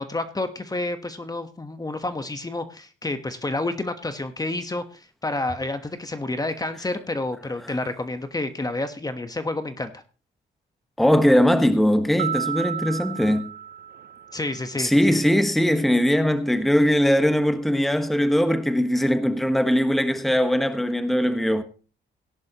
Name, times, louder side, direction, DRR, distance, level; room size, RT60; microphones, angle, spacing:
voice 1, 0.0-10.0 14.3-15.2, left 2 dB, 20° left, 1.3 m, -29 dB
voice 2, 11.0-13.5 14.8-21.6, equal, ahead, 1.3 m, -20 dB
sound 1, 12.2-14.7, right 8 dB, 55° right, 0.6 m, -32 dB
17.5 x 10.5 x 3.0 m
cardioid pair, 90°, 20 cm